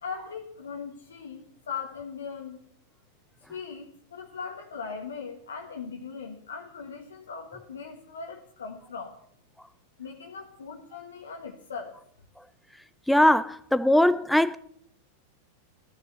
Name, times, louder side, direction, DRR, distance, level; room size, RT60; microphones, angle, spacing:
voice 1, 0.0-2.6 3.5-9.2 10.0-11.9, left 5 dB, 65° left, 1.5 m, -39 dB
voice 2, 13.1-14.6, left 1 dB, ahead, 0.5 m, -21 dB
15.5 x 11.0 x 7.0 m
figure-of-eight pair, 90°, 0 cm